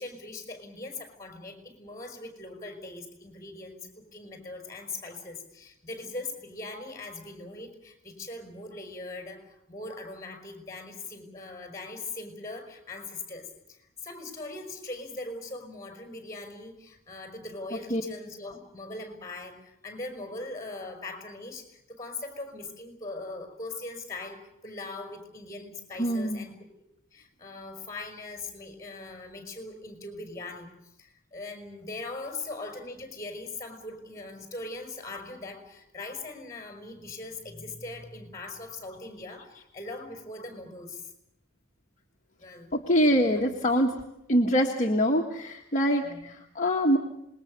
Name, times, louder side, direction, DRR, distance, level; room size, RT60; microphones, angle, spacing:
voice 1, 0.0-26.5 27.1-30.7 31.0-41.1 42.4-42.7 43.1-43.4 46.0-46.3, left 2 dB, 15° left, 6 dB, 5.5 m, -40 dB
voice 2, 26.0-26.5 42.7-43.9 44.3-47.0, equal, 35° left, 0 dB, 1.6 m, -24 dB
27.0 x 21.0 x 6.7 m, 0.80 s
head